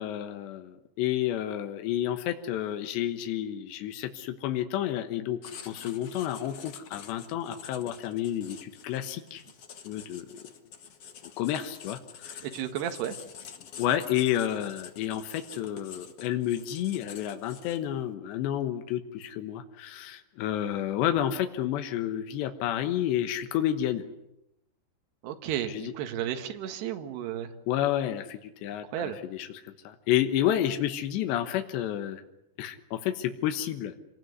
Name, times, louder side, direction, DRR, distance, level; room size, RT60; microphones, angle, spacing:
voice 1, 0.0-5.4 5.7-9.4 9.9-10.4 11.4-12.5 13.8-24.0 25.7-25.9 27.7-32.2 32.6-33.9, left 11 dB, 80° left, 7 dB, 3.5 m, -30 dB
Writing, 5.4-18.0, left 7 dB, 50° left, 1.9 m, -47 dB
voice 2, 12.5-13.2 25.2-27.5 28.9-29.2, right 10 dB, 75° right, 6 dB, 3.7 m, -33 dB
27.0 x 19.5 x 9.6 m, 0.86 s
omnidirectional pair, 4.9 m